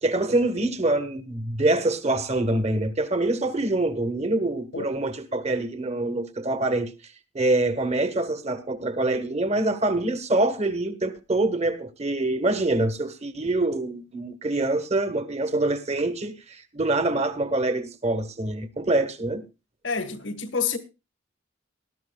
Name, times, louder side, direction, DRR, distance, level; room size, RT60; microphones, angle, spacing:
voice 1, 0.0-6.9 7.3-19.4, right 2 dB, 35° right, 1.4 m, -25 dB
voice 2, 19.8-20.8, left 5 dB, 75° left, 1.7 m, -28 dB
19.0 x 12.5 x 2.4 m
head